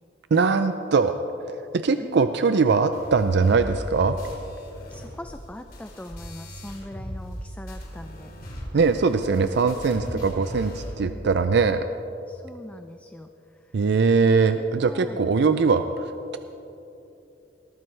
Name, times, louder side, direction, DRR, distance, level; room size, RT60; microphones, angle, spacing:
voice 1, 0.3-1.1 1.5-4.2 8.7-11.8 13.7-16.4, right 4 dB, 65° right, 9 dB, 0.4 m, -21 dB
voice 2, 2.0-2.3 4.9-8.3 10.1-10.3 11.0-11.3 12.3-13.3 13.6-13.7 14.5-15.2, left 1 dB, 10° left, 7 dB, 0.4 m, -41 dB
sound 1, 2.9-7.4 7.7-10.9, equal, 55° left, 3.1 m, -38 dB
20.0 x 13.5 x 3.3 m, 2.9 s
head